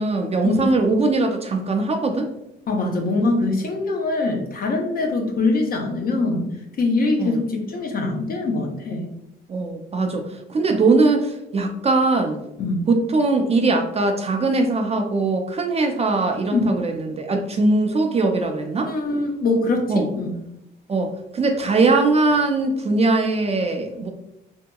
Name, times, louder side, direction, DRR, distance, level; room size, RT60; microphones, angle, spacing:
voice 1, 0.0-2.3 7.2-7.4 9.5-10.2 10.5-12.4 12.9-18.9 19.9-20.1 20.9-24.1, right 3 dB, 30° right, 4 dB, 0.4 m, -21 dB
voice 2, 2.7-6.5 6.8-9.1 12.6-12.8 16.5-16.7 18.9-20.4, left 3 dB, 50° left, 2 dB, 0.7 m, -23 dB
2.8 x 2.7 x 2.2 m, 0.86 s
cardioid pair, 90°, 20 cm